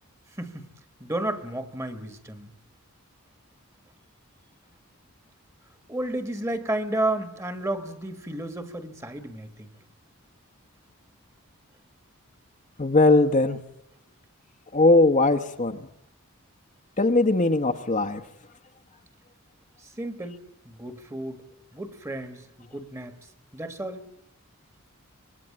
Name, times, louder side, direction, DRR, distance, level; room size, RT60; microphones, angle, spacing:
voice 1, 1.0-2.5 5.9-9.7 20.0-20.4 20.6-21.4 21.7-23.2 23.5-24.1, right 1 dB, 15° right, 9 dB, 1.5 m, -32 dB
voice 2, 12.8-13.6 14.7-15.8 17.0-18.2, left 2 dB, 35° left, 7 dB, 1.0 m, -20 dB
25.0 x 20.5 x 8.7 m, 0.82 s
head